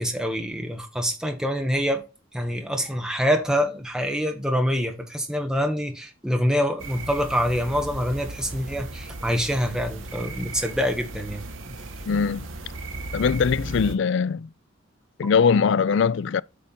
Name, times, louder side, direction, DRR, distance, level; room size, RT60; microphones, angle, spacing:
voice 1, 0.0-2.0 2.3-11.5, equal, 5° right, 1.5 m, -25 dB
sound 1, 6.8-13.9, right 2 dB, 70° right, 1.6 m, -36 dB
voice 2, 12.1-12.5 13.1-14.5 15.2-16.4, left 6 dB, 60° left, 0.3 m, -21 dB
8.6 x 5.0 x 4.2 m
head